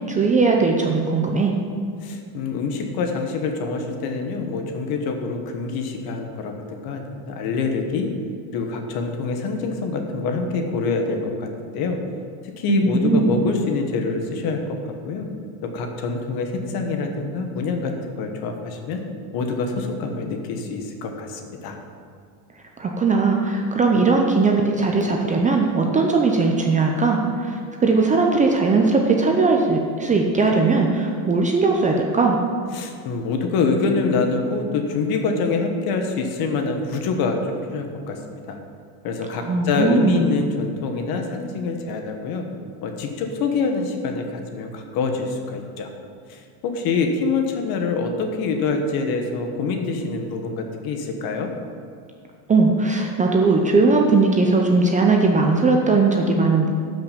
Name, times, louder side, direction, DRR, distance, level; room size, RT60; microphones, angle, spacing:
voice 1, 0.1-1.5 12.7-13.2 22.8-32.4 39.4-40.3 52.5-56.7, right 3 dB, 15° right, 1 dB, 0.6 m, -19 dB
voice 2, 2.0-8.1 8.5-12.0 12.4-14.8 15.0-15.3 15.6-19.0 19.3-21.8 32.7-38.6 39.0-42.5 42.8-45.9 46.3-51.5, left 4 dB, 50° left, 4 dB, 1.4 m, -25 dB
12.5 x 5.9 x 5.2 m, 2.2 s
cardioid pair, 145°, 46 cm